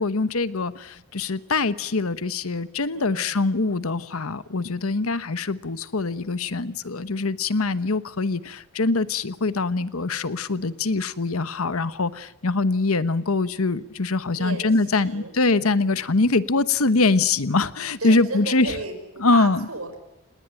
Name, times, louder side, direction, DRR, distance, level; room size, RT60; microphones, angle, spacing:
voice 1, 0.0-18.8 19.2-19.7, left 3 dB, 80° left, 14 dB, 1.1 m, -23 dB
voice 2, 2.9-3.3 14.3-15.3 15.7-16.0 18.0-20.0, right 3 dB, 75° right, 5 dB, 5.7 m, -34 dB
28.0 x 20.0 x 9.0 m, 0.87 s
head